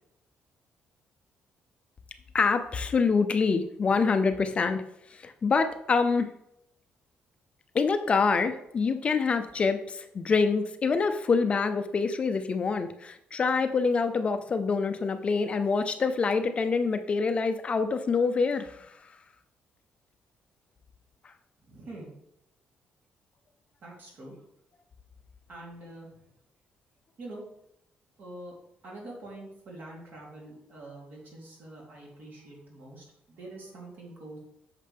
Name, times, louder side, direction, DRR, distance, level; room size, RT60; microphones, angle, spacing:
voice 1, 2.3-4.8 5.1-6.3 7.7-18.9, left 4 dB, 30° left, 8 dB, 0.5 m, -26 dB
voice 2, 21.6-22.1 23.8-24.3 25.5-26.1 27.2-27.4 28.2-28.5 28.8-34.4, right 2 dB, 55° right, -3 dB, 3.1 m, -45 dB
8.5 x 6.6 x 3.4 m, 0.78 s
cardioid pair, 150°, 4 cm